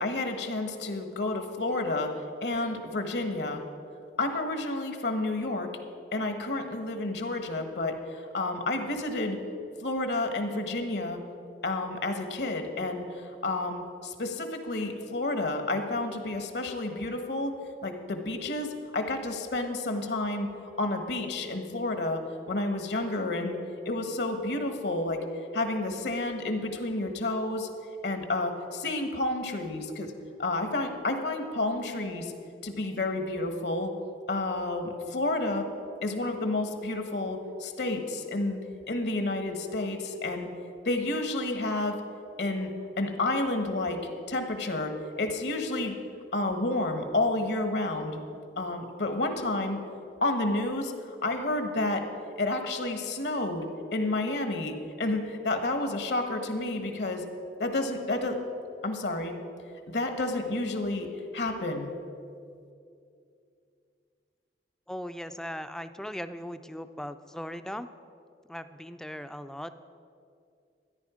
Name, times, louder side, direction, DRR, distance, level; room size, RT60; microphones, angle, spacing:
voice 1, 0.0-3.6 4.2-5.7 6.1-9.4 9.8-11.2 11.6-17.5 17.8-22.2 22.5-23.6 23.8-25.2 25.5-27.7 28.0-30.1 30.4-32.3 32.6-33.9 34.3-35.7 36.0-38.6 38.9-40.5 40.8-42.0 42.4-44.0 44.3-45.9 46.3-48.2 48.6-49.8 50.2-50.9 51.2-52.1 52.4-57.2 57.6-58.4 58.8-59.3 59.9-61.1 61.3-61.9, left 2 dB, 70° left, 6 dB, 1.2 m, -30 dB
voice 2, 64.9-67.9 68.5-69.9, equal, 5° left, 11 dB, 0.3 m, -38 dB
13.0 x 10.5 x 5.0 m, 2.5 s
head